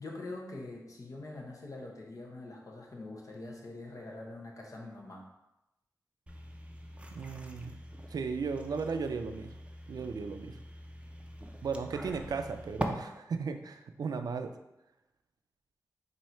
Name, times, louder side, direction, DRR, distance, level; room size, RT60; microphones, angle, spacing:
voice 1, 0.0-5.3, left 2 dB, 60° left, -1 dB, 1.0 m, -44 dB
sound 1, 6.3-12.8, right 1 dB, 20° right, 0.5 m, -43 dB
voice 2, 7.1-7.8 8.1-9.5 9.9-10.6 11.6-14.5, right 5 dB, 80° right, 8 dB, 0.4 m, -36 dB
4.2 x 2.7 x 4.4 m, 0.91 s
wide cardioid pair, 75°, 6 cm